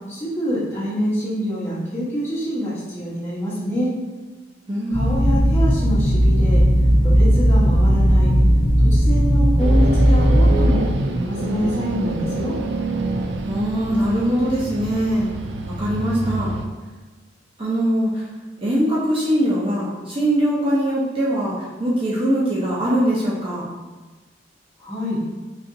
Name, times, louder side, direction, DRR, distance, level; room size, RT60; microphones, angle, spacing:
voice 1, 0.1-3.9 4.9-6.6 7.0-8.3 8.8-12.6 24.8-25.2, equal, 15° left, -10 dB, 1.2 m, -26 dB
voice 2, 4.7-5.4 13.5-15.3 15.6-16.5 17.6-18.3 18.6-23.7, equal, 30° right, -7 dB, 0.6 m, -22 dB
sound 1, 4.9-10.7, equal, 45° left, 0.7 m, -16 dB
sound 2, 9.6-16.7, right 2 dB, 70° right, 0.4 m, -27 dB
4.0 x 3.4 x 2.6 m, 1.3 s
head